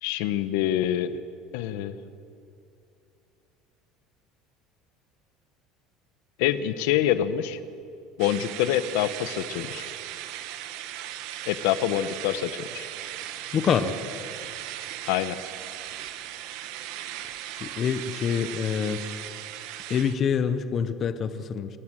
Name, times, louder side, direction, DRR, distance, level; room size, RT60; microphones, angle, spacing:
voice 1, 0.0-1.2 1.5-2.0 6.4-7.6 8.2-9.9 11.5-12.9 15.1-15.4, left 11 dB, 70° left, 13 dB, 0.9 m, -26 dB
sound 1, 8.2-20.2, right 12 dB, 60° right, 1.3 m, -38 dB
voice 2, 13.5-13.9 17.6-19.0 19.9-21.7, left 7 dB, 25° left, 12 dB, 0.7 m, -26 dB
27.0 x 14.5 x 7.5 m, 2.6 s
cardioid pair, 180°, 0 cm